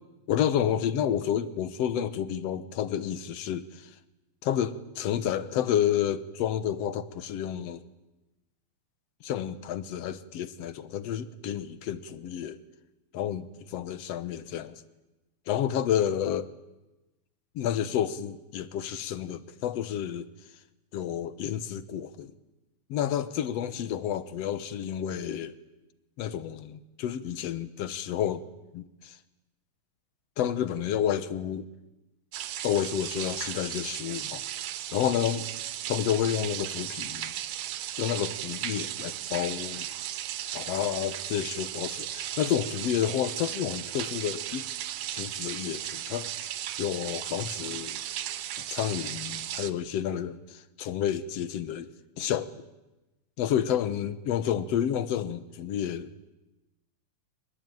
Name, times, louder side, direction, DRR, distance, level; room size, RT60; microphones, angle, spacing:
voice 1, 0.3-3.9 4.4-7.8 9.2-12.6 13.1-14.8 15.5-16.5 17.6-20.3 20.9-22.3 22.9-25.6 26.2-28.5 28.7-29.2 30.4-31.7 32.6-34.4 34.9-35.5 35.9-37.3 38.0-39.9 40.5-44.6 45.1-48.0 48.7-51.9 52.2-52.5 53.4-56.1, left 10 dB, 65° left, 1.9 m, -30 dB
sound 1, 32.3-49.7, right 12 dB, 70° right, 2.2 m, -36 dB
24.0 x 20.5 x 9.2 m
omnidirectional pair, 3.6 m